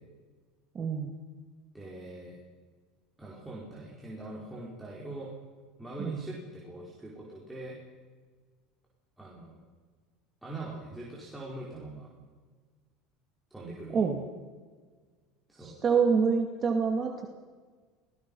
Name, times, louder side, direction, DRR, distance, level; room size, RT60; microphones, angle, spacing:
voice 1, 0.7-1.1 6.0-6.2 13.9-14.2 15.6-17.3, right 5 dB, 30° right, 2 dB, 2.4 m, -26 dB
voice 2, 1.7-2.4 3.2-5.3 5.8-7.8 9.2-9.6 10.4-12.1 13.5-14.1 15.5-15.7, right 2 dB, 5° right, -5 dB, 4.9 m, -42 dB
26.5 x 19.0 x 5.6 m, 1.5 s
supercardioid pair, 125°, 0 cm